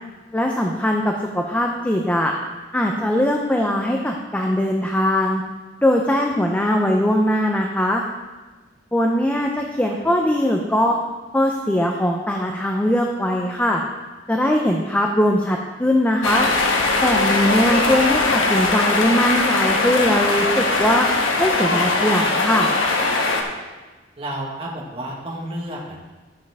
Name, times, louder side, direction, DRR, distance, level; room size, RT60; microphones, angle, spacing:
voice 1, 0.3-2.3 2.7-5.4 5.8-8.0 8.9-11.0 11.3-13.8 14.3-16.5 17.0-21.1 21.4-22.7, left 1 dB, 10° left, 1 dB, 0.6 m, -20 dB
sound 1, 16.2-23.4, left 3 dB, 90° left, 1.2 m, -20 dB
voice 2, 24.2-26.0, right 1 dB, 30° right, -4 dB, 1.5 m, -31 dB
12.0 x 7.0 x 3.5 m, 1.2 s
head